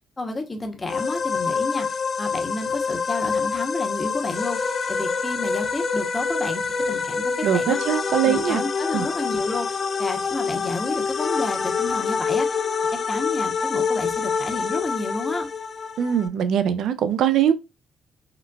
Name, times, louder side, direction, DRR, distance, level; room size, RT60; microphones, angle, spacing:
voice 1, 0.2-7.8 8.3-12.6 13.1-15.5, left 2 dB, 25° left, 0.8 m, -31 dB
sound 1, 0.9-16.3, left 5 dB, 45° left, 0.3 m, -26 dB
voice 2, 7.4-8.6 8.9-9.1 16.0-17.5, right 9 dB, 75° right, 0.3 m, -21 dB
3.8 x 2.2 x 2.2 m
cardioid pair, 90°, 0 cm